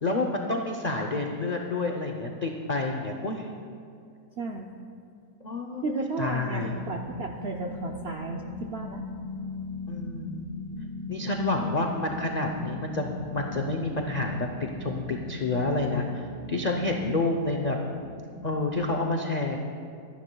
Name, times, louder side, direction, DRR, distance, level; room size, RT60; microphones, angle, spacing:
voice 1, 0.0-3.5 5.4-6.8 9.9-10.5 11.1-17.8 18.4-19.6, left 2 dB, 85° left, 1 dB, 0.3 m, -29 dB
voice 2, 4.4-4.7 5.8-9.0 11.6-11.8, right 3 dB, 65° right, 2 dB, 0.6 m, -34 dB
sound 1, 6.5-18.7, left 2 dB, 40° left, 2.1 m, -39 dB
25.0 x 10.5 x 2.3 m, 2.4 s
omnidirectional pair, 1.8 m